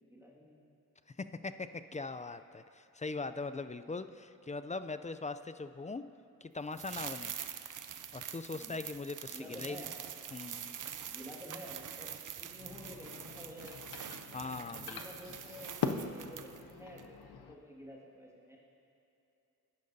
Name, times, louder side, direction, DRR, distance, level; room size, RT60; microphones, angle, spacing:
voice 1, 0.1-0.6 8.5-8.8 9.2-10.0 11.1-12.1 12.4-13.8 14.7-18.6, equal, 5° right, -4 dB, 1.9 m, -51 dB
voice 2, 1.2-6.1 6.4-7.3 8.1-9.9 10.3-10.7 14.3-15.0, left 3 dB, 20° left, 11 dB, 0.3 m, -41 dB
sound 1, 6.7-16.7 17.0-17.1, right 8 dB, 55° right, 0.6 m, -45 dB
sound 2, 12.5-17.5, left 6 dB, 90° left, 0.6 m, -42 dB
15.0 x 10.5 x 2.7 m, 2.8 s
cardioid pair, 45°, 37 cm